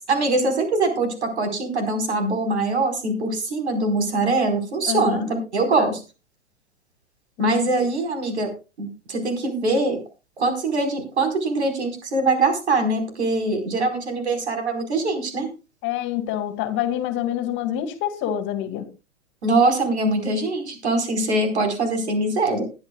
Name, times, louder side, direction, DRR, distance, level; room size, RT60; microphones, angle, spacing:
voice 1, 0.1-6.0 7.4-8.5 8.8-10.0 10.4-15.5 19.4-22.6, right 2 dB, 70° right, 5 dB, 4.8 m, -23 dB
voice 2, 4.9-5.3 5.8-5.9 7.4-7.9 15.8-18.9, left 11 dB, 35° left, 10 dB, 2.2 m, -27 dB
21.5 x 10.5 x 2.4 m, 0.30 s
figure-of-eight pair, 105°, 35 cm